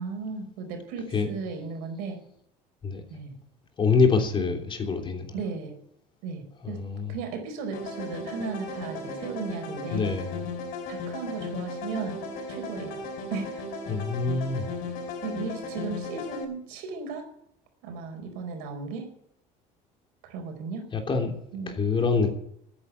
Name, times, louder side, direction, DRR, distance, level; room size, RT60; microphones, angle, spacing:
voice 1, 0.0-2.2 3.1-3.3 5.3-5.7 6.2-6.8 7.1-10.1 10.9-12.2 12.5-13.0 13.3-13.6 15.2-17.3 17.8-19.1 20.2-20.9 21.5-21.8, right 4 dB, 85° right, 4.6 m, -35 dB
voice 2, 3.8-5.2 6.6-7.1 9.9-10.5 13.9-14.7 20.9-21.3 21.7-22.3, left 4 dB, 35° left, 3.2 m, -25 dB
sound 1, 7.7-16.4, left 3 dB, 75° left, 5.6 m, -36 dB
13.0 x 9.8 x 8.6 m
cardioid pair, 115°, 15 cm